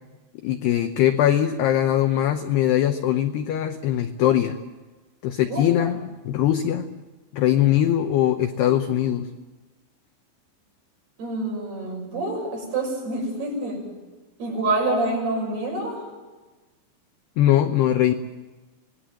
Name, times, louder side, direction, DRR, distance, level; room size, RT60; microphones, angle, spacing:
voice 1, 0.4-4.6 5.2-6.9 7.3-9.3 17.4-18.1, left 11 dB, 80° left, 7 dB, 2.4 m, -21 dB
voice 2, 11.2-13.8 14.4-16.0, right 2 dB, 50° right, 0 dB, 8.8 m, -27 dB
27.5 x 20.5 x 7.7 m, 1.2 s
omnidirectional pair, 5.8 m